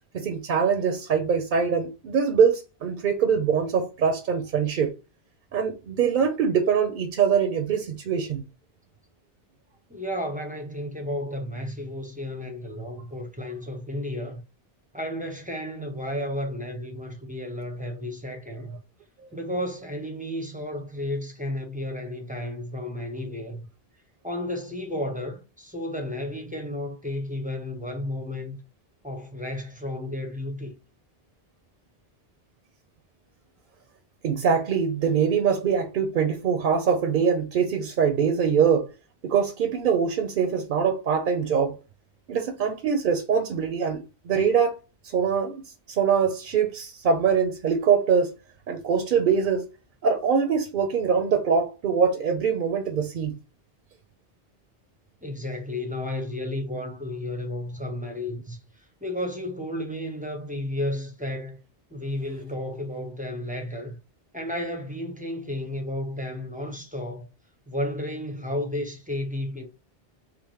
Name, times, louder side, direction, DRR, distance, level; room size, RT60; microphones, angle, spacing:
voice 1, 0.1-4.9 5.5-8.4 34.2-38.9 39.2-41.8 42.3-44.8 45.1-45.6 45.9-48.3 48.7-49.7 50.0-53.4, right 6 dB, 60° right, 0.7 m, -23 dB
voice 2, 9.9-14.4 14.9-18.8 19.3-23.6 24.2-28.6 29.0-30.7 55.2-61.6 61.9-64.0 64.3-67.3 67.7-69.7, left 1 dB, 10° right, 0.5 m, -32 dB
5.1 x 2.0 x 3.0 m
omnidirectional pair, 1.0 m